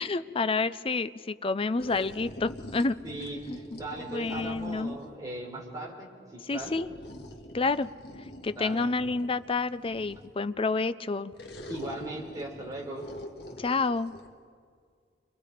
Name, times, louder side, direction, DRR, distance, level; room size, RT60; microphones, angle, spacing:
voice 1, 0.0-3.0 4.1-5.0 6.5-6.9 7.5-7.9 8.4-11.3 13.6-14.1, left 3 dB, 30° left, 13 dB, 0.5 m, -29 dB
sound 1, 1.8-5.2 6.6-10.4 11.4-14.3, equal, 65° left, 1.9 m, -45 dB
voice 2, 3.0-6.7 8.5-8.9 11.7-13.0, right 1 dB, 20° right, -2 dB, 4.7 m, -38 dB
29.5 x 24.0 x 5.1 m, 2.1 s
head